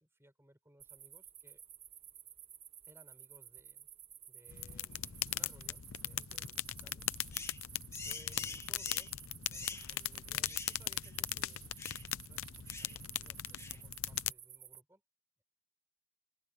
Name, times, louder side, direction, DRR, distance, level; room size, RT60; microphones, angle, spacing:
voice 1, 0.0-1.6 2.8-3.9 4.3-7.1 8.0-11.9 12.2-15.0, right 1 dB, 10° right, 6.7 m, -64 dB
sound 1, 0.8-14.8, right 9 dB, 30° right, 1.3 m, -54 dB
sound 2, 4.5-14.3, left 13 dB, 85° left, 0.7 m, -39 dB
sound 3, 7.3-7.6 7.9-9.1 9.5-9.9 10.4-10.8 11.0-11.2 11.8-12.1 12.7-13.0 13.6-13.8, left 4 dB, 15° left, 2.1 m, -45 dB
open air
head